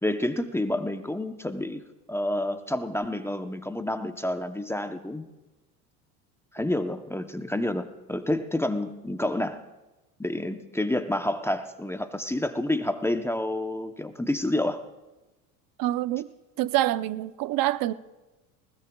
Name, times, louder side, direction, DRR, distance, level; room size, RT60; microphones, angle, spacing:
voice 1, 0.0-5.3 6.5-9.6 10.2-14.8, left 1 dB, 5° left, 0.8 m, -29 dB
voice 2, 15.8-16.3 16.6-17.9, right 14 dB, 50° right, 0.7 m, -26 dB
20.5 x 19.5 x 2.3 m
supercardioid pair, 90°, 45 cm